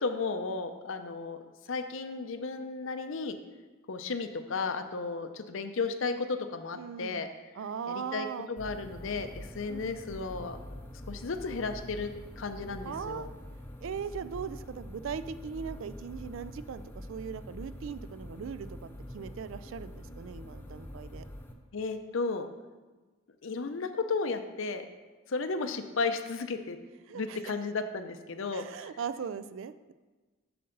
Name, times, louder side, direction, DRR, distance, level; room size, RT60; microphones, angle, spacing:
voice 1, 0.0-1.4 1.7-3.4 3.9-7.3 7.9-10.6 11.1-12.1 12.4-13.3 21.7-22.5 23.4-24.8 25.3-26.8 27.1-28.9, left 4 dB, 70° left, 8 dB, 0.6 m, -34 dB
voice 2, 6.7-7.2 7.5-8.5 9.7-10.0 12.8-13.3 13.8-21.2 27.1-27.4 28.5-29.9, right 7 dB, 70° right, 13 dB, 0.3 m, -39 dB
sound 1, 8.6-21.5, left 1 dB, 10° left, 0.5 m, -45 dB
7.8 x 6.6 x 3.9 m, 1.3 s
head